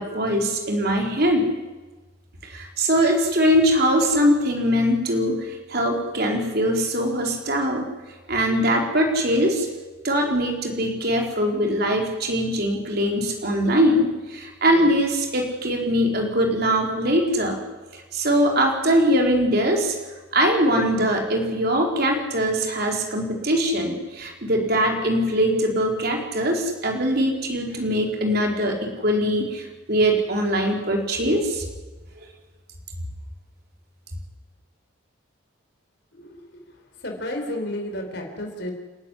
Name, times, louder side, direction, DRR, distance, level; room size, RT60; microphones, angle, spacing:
voice 1, 0.0-1.5 2.4-7.9 8.3-9.7 10.0-17.6 17.9-19.9 20.3-31.6, equal, 50° right, 1 dB, 4.1 m, -22 dB
voice 2, 36.1-36.6 37.0-38.7, left 1 dB, 55° left, 3 dB, 4.3 m, -32 dB
30.0 x 11.5 x 9.9 m, 1.2 s
head